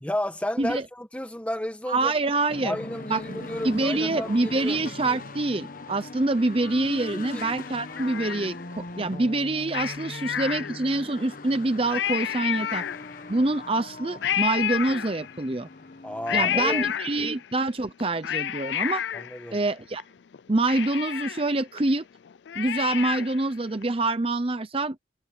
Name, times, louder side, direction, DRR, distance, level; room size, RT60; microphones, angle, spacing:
voice 1, 0.0-2.1 2.6-4.8 7.1-7.4 16.0-16.9 19.1-19.6, left 1 dB, 5° left, 1.6 m, -32 dB
voice 2, 1.9-2.8 3.1-12.8 13.3-15.7 16.3-19.0 19.5-20.0 20.5-22.0 22.5-25.0, right 2 dB, 30° right, 0.7 m, -26 dB
sound 1, 2.5-17.0, left 2 dB, 45° left, 1.3 m, -41 dB
Cat, 7.4-8.8 9.7-11.1 11.5-11.6 11.9-13.4 14.2-15.6 16.3-17.5 18.0-20.0 20.3-20.4 20.7-23.5 23.8-23.9, left 10 dB, 70° left, 0.4 m, -30 dB
head